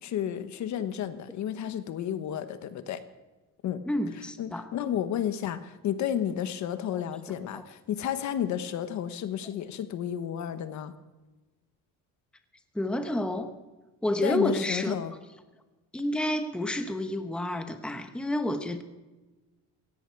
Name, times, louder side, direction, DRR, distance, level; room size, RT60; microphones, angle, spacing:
voice 1, 0.0-3.0 3.6-3.8 4.4-10.9 14.2-15.1, left 10 dB, 60° left, 11 dB, 1.2 m, -32 dB
voice 2, 3.9-4.7 6.9-7.0 7.5-7.6 12.7-13.5 14.0-15.0 15.9-18.8, left 1 dB, 5° left, 7 dB, 0.9 m, -29 dB
17.5 x 16.5 x 4.6 m, 1.1 s
cardioid pair, 170°, 32 cm